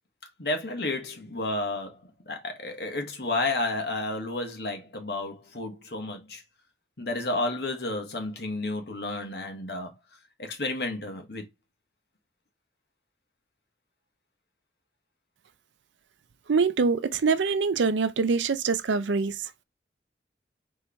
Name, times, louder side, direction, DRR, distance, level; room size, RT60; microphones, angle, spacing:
voice 1, 0.4-2.0 2.3-6.4 7.0-9.9 10.4-11.5, left 2 dB, 60° left, 1.3 m, -31 dB
voice 2, 16.5-19.6, right 4 dB, 85° right, 0.5 m, -25 dB
4.6 x 3.1 x 3.4 m
head